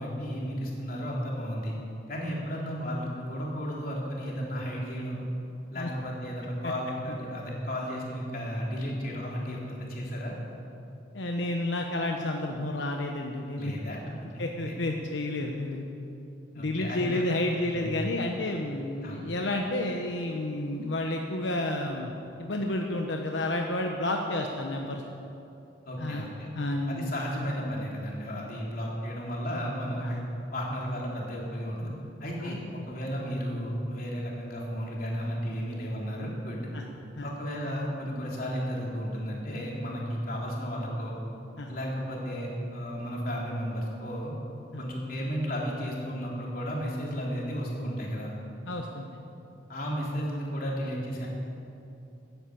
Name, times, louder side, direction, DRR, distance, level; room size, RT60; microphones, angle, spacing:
voice 1, 0.0-1.7 2.1-5.2 5.7-10.3 13.5-14.8 16.5-17.2 17.7-17.9 19.0-19.2 25.9-26.5 26.9-30.2 30.5-31.9 32.2-36.7 37.2-41.1 41.7-44.3 44.8-48.3 49.7-51.3, equal, 50° left, -3 dB, 3.3 m, -33 dB
voice 2, 11.1-13.7 14.4-15.9 16.6-22.1 22.4-25.0 26.0-26.3 26.5-27.1 30.0-30.2 32.4-32.6 36.7-36.8 37.2-37.3 41.6-41.7 44.7-44.8 48.7-49.1, left 1 dB, 90° left, 2 dB, 1.0 m, -31 dB
13.5 x 10.0 x 8.5 m, 2.8 s
head